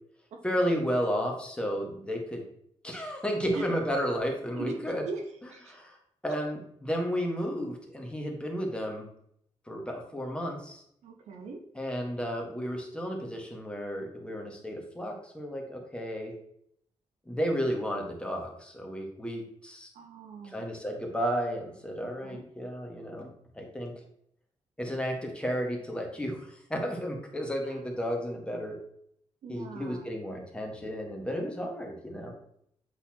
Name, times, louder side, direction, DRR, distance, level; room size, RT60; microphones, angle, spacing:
voice 1, 0.4-2.4 2.8-5.0 5.7-6.0 6.2-9.0 9.7-10.8 11.7-16.3 17.3-19.9 20.4-23.3 23.5-23.9 24.8-28.7 29.5-32.3, equal, 10° left, 1 dB, 1.5 m, -33 dB
voice 2, 5.1-5.8 6.3-6.4 11.0-11.6 19.9-20.6 22.2-22.4 27.6-27.8 29.4-30.1, right 3 dB, 80° right, 3 dB, 1.0 m, -40 dB
8.1 x 4.1 x 2.9 m, 0.69 s
cardioid pair, 95°, 11 cm